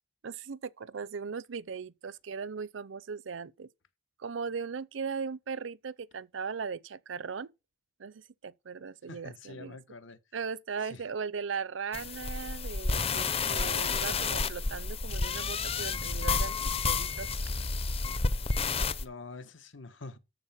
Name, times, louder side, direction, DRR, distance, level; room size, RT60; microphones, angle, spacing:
voice 1, 0.2-3.7 4.2-7.5 8.0-9.8 10.3-17.4, right 5 dB, 80° right, 0.6 m, -38 dB
voice 2, 9.1-10.2 10.8-11.0 19.0-20.2, left 3 dB, 80° left, 1.3 m, -46 dB
sound 1, 11.9-19.0, left 4 dB, 30° left, 0.7 m, -30 dB
13.5 x 4.5 x 7.4 m
head